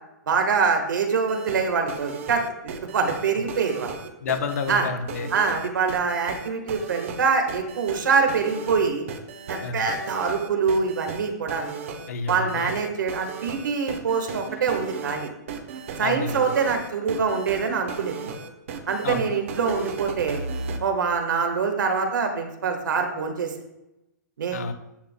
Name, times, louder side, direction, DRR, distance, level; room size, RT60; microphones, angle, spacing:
voice 1, 0.3-4.0 4.7-4.9 5.3-9.0 9.5-11.8 12.3-15.3 16.0-18.2 18.9-20.4 20.8-23.5 24.4-24.7, right 5 dB, 85° right, 5 dB, 1.4 m, -24 dB
sound 1, 1.2-20.8, right 5 dB, 45° right, 0.8 m, -36 dB
voice 2, 4.2-5.3 9.6-9.9 12.1-12.7 16.0-16.5 19.0-19.3 24.5-24.7, left 5 dB, 50° left, 7 dB, 0.9 m, -29 dB
10.0 x 7.3 x 2.2 m, 0.90 s
hypercardioid pair, 175°, 10 cm